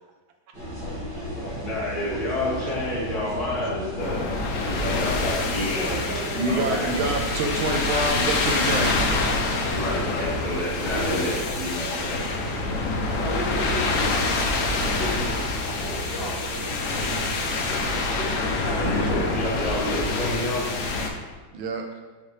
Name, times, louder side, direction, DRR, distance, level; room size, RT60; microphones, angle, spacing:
sound 1, 0.5-20.1, equal, 60° right, 2.5 m, -35 dB
voice 1, 1.0-1.6 3.5-4.0 5.7-7.0 10.7-11.3 13.1-15.5 15.8-17.8 18.2-19.3 19.7-20.3, equal, 30° right, -5 dB, 1.3 m, -35 dB
voice 2, 1.6-4.2 4.6-6.0 6.5-6.9 9.7-12.2 18.8-20.7, left 1 dB, 50° left, -7 dB, 2.3 m, -29 dB
sound 2, 4.0-21.1, left 3 dB, 90° left, 0.7 m, -26 dB
voice 3, 6.4-9.0 21.5-22.0, right 2 dB, 75° right, 3 dB, 1.5 m, -27 dB
5.6 x 5.2 x 3.2 m, 1.2 s
omnidirectional pair, 2.2 m